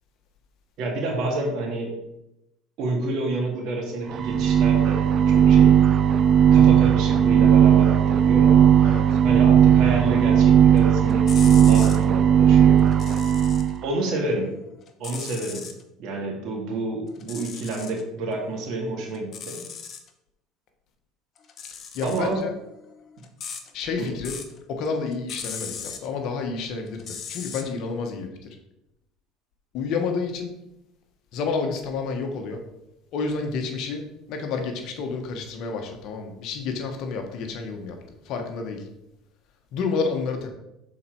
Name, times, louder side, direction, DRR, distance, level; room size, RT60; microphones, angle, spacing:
voice 1, 0.8-1.9 2.8-5.8 6.5-8.6 9.2-12.8 13.8-14.5 15.0-15.6 16.0-19.6 22.0-22.4 24.0-24.1, right 2 dB, 65° right, 1 dB, 2.0 m, -29 dB
sound 1, 4.1-13.8, right 8 dB, 45° right, 0.4 m, -16 dB
sound 2, 10.8-12.0 12.8-13.8 14.1-15.8 17.1-18.0 18.4-20.1 21.4-24.6 24.8-26.1 26.9-27.6, left 7 dB, 45° left, 0.9 m, -39 dB
voice 2, 21.9-22.5 23.7-24.4 24.7-27.0 27.3-28.3 29.7-30.5 31.3-32.6 33.1-38.0 38.3-38.8 39.7-40.5, left 4 dB, 65° left, 4 dB, 1.2 m, -29 dB
6.5 x 4.4 x 4.5 m, 0.89 s
supercardioid pair, 90°, 0 cm